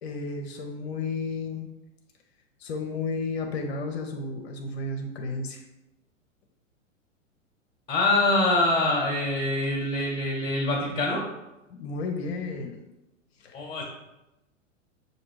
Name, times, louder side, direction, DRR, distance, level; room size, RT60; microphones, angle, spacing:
voice 1, 0.0-1.7 2.6-5.6 11.7-12.8 13.4-13.6, left 3 dB, 55° left, 4 dB, 0.6 m, -32 dB
voice 2, 7.9-11.2 13.5-13.8, left 2 dB, 15° left, -3 dB, 1.0 m, -24 dB
5.9 x 2.7 x 3.0 m, 0.97 s
figure-of-eight pair, 100°, 39 cm